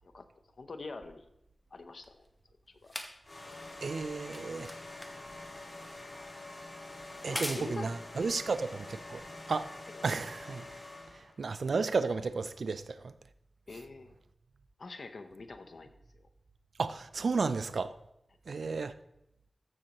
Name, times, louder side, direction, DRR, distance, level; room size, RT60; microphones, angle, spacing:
voice 1, 0.6-1.3 1.7-2.2 2.7-2.9 7.2-7.9 8.2-8.3 9.9-10.1 13.7-14.2 14.8-16.2, left 3 dB, 70° left, 0.7 m, -45 dB
sound 1, 1.0-9.6 10.5-10.6, equal, 10° left, 0.9 m, -45 dB
sound 2, 3.2-11.4, left 2 dB, 45° left, 2.2 m, -46 dB
voice 2, 3.8-4.7 7.2-9.2 9.5-9.7 10.0-10.7 11.4-13.1 16.8-17.9 18.5-18.9, right 4 dB, 80° right, 0.4 m, -33 dB
14.0 x 6.4 x 3.0 m
wide cardioid pair, 95°, 0 cm